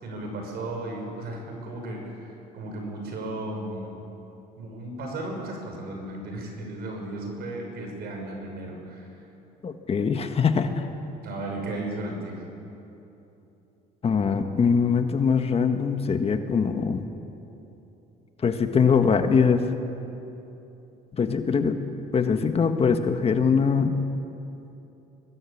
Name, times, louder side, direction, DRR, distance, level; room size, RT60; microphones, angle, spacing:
voice 1, 0.0-4.0 4.6-9.1 11.2-12.4, right 2 dB, 70° right, 2 dB, 6.4 m, -35 dB
voice 2, 9.6-10.9 14.0-17.1 18.4-19.6 21.1-21.8 22.1-24.0, left 6 dB, 35° left, 7 dB, 1.6 m, -22 dB
24.0 x 20.0 x 8.6 m, 2.9 s
cardioid pair, 110°, 17 cm